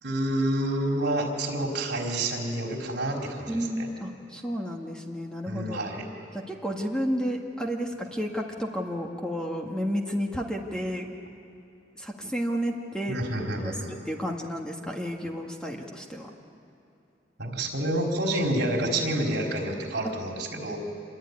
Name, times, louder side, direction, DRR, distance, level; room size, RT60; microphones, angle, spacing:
voice 1, 0.0-3.9 5.5-6.1 13.1-14.0 17.4-20.8, right 1 dB, 65° right, 1 dB, 4.4 m, -28 dB
voice 2, 3.5-5.8 6.5-11.1 12.0-16.3, equal, 5° left, 1 dB, 1.8 m, -31 dB
26.5 x 22.5 x 9.8 m, 2.8 s
head